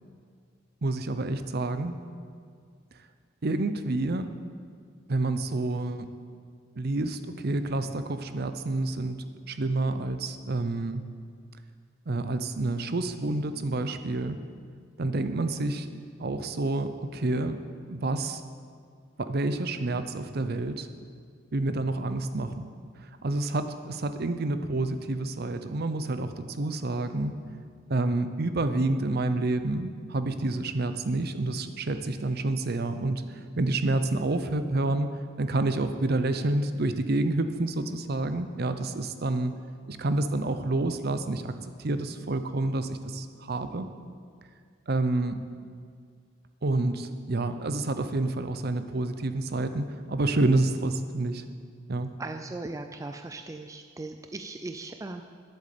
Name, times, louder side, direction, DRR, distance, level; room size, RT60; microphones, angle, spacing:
voice 1, 0.8-2.0 3.4-4.3 5.1-6.1 6.8-9.2 9.5-11.0 12.1-14.4 15.0-15.9 16.2-17.6 17.9-18.4 19.2-20.9 21.5-22.7 23.2-27.3 27.9-33.3 33.6-35.1 35.4-39.5 39.9-41.5 41.8-43.9 44.9-45.4 46.6-51.4 51.9-52.1, right 2 dB, 50° right, 10 dB, 0.6 m, -28 dB
voice 2, 52.2-55.2, right 2 dB, 15° right, 6 dB, 0.3 m, -38 dB
10.5 x 8.0 x 6.9 m, 2.1 s
head